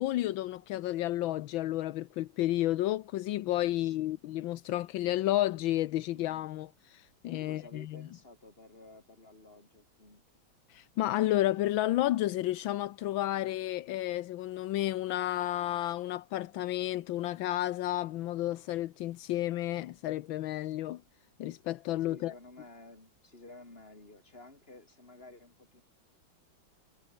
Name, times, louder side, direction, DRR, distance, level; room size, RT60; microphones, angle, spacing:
voice 1, 0.0-8.0 10.7-21.0 21.4-22.3, left 14 dB, 80° left, 1.5 m, -31 dB
voice 2, 3.7-4.2 7.4-10.2 22.1-25.8, left 2 dB, 30° left, 4.5 m, -53 dB
omnidirectional pair, 2.1 m